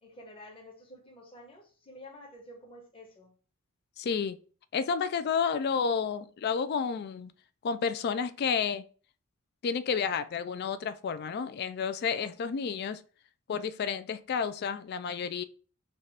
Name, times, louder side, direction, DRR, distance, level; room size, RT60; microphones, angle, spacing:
voice 1, 0.0-3.3 12.2-12.3, left 1 dB, 25° left, 1.0 m, -50 dB
voice 2, 4.0-4.4 4.7-7.3 7.6-8.8 9.6-13.0 13.5-15.4, left 6 dB, 50° left, 0.3 m, -31 dB
3.3 x 2.4 x 4.1 m
head